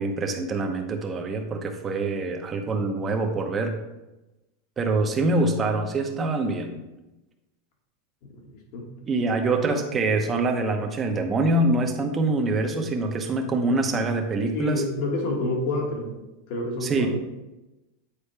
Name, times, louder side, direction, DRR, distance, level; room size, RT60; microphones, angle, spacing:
voice 1, 0.0-3.8 4.8-6.8 9.1-14.8 16.8-17.1, right 2 dB, 20° right, 4 dB, 0.9 m, -25 dB
voice 2, 8.5-8.9 14.5-16.1 16.5-17.1, left 2 dB, 60° left, 0 dB, 1.8 m, -28 dB
8.3 x 4.3 x 3.4 m, 1.0 s
supercardioid pair, 135°, 0 cm